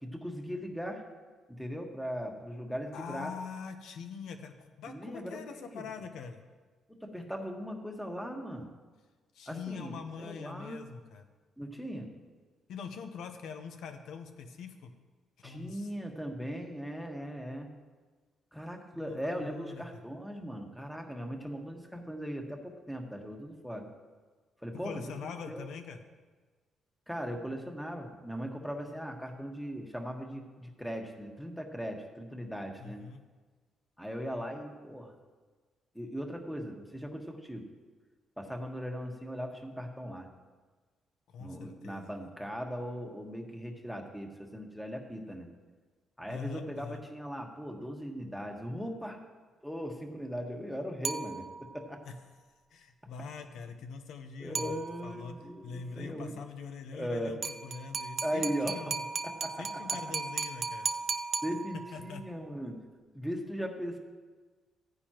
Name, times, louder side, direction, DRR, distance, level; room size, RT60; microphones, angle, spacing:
voice 1, 0.0-1.0 1.5-3.3 4.9-5.8 7.0-8.7 9.5-10.8 11.6-12.1 15.4-17.7 18.5-23.9 24.6-25.7 27.1-33.0 34.0-35.2 35.9-37.7 38.4-40.3 41.4-45.5 46.2-49.2 49.6-52.0 54.4-56.4 56.9-57.4 58.2-58.9 59.2-60.0 61.4-62.8 63.1-64.0, equal, ahead, 2 dB, 1.5 m, -39 dB
voice 2, 2.9-6.4 9.3-11.3 12.7-14.9 15.4-15.9 18.9-19.8 24.7-26.0 32.8-33.2 41.3-42.1 46.3-47.0 52.0-52.1 52.7-54.7 55.0-55.4 55.6-59.0 59.6-60.9 61.9-62.2, left 6 dB, 80° left, 7 dB, 0.9 m, -43 dB
sound 1, 51.0-51.8 54.5-55.3 57.4-62.1, right 4 dB, 45° right, 0.5 m, -36 dB
14.5 x 9.6 x 3.0 m, 1.4 s
cardioid pair, 90°, 0 cm